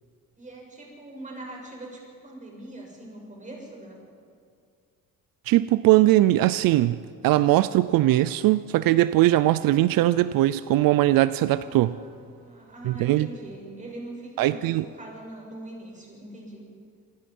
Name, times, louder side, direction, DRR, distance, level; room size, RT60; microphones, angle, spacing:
voice 1, 0.4-4.0 11.4-16.6, right 2 dB, 20° right, -1 dB, 7.1 m, -42 dB
voice 2, 5.5-7.0 7.2-11.9 12.8-13.3 14.4-14.8, right 15 dB, 85° right, 15 dB, 0.6 m, -20 dB
27.5 x 20.5 x 5.4 m, 2.3 s
cardioid pair, 115°, 33 cm